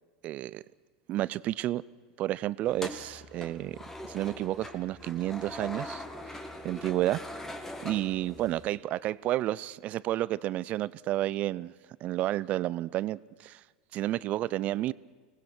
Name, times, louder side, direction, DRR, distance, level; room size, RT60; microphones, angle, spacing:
voice 1, 0.2-0.6 1.1-1.8 2.2-3.8 4.1-6.0 6.3-6.4 6.6-7.2 7.8-11.7 12.0-13.6 13.9-14.9, right 14 dB, 45° right, 0.5 m, -31 dB
sound 1, 2.6-8.7, left 1 dB, 10° left, 2.2 m, -42 dB
25.5 x 19.0 x 6.1 m
hypercardioid pair, 90°, 3 cm